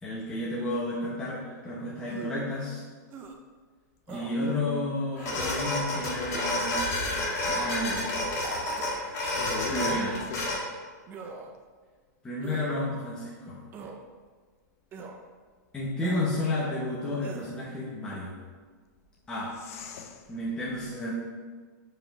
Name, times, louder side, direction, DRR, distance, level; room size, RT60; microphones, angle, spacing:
voice 1, 0.0-2.8 4.1-6.8 7.5-8.1 9.7-10.1 12.2-13.6 15.7-18.4 19.3-19.6 20.3-21.1, left 1 dB, 10° left, -7 dB, 1.0 m, -31 dB
sound 1, 2.0-2.5 3.1-3.4 4.1-4.3 5.1-5.6 6.3-6.6 7.4-7.8 8.8-8.9 9.8-10.2 11.1-11.6 12.4-12.8 13.7-14.0 14.9-15.2 16.0-16.3 17.2-17.6, right 4 dB, 20° right, 0.6 m, -43 dB
sound 2, 5.2-10.6, left 1 dB, 30° left, 1.9 m, -30 dB
voice 2, 9.3-10.4 19.5-20.3 20.7-20.8, left 6 dB, 50° left, 6 dB, 0.8 m, -39 dB
5.6 x 5.0 x 5.2 m, 1.5 s
supercardioid pair, 160°, 10 cm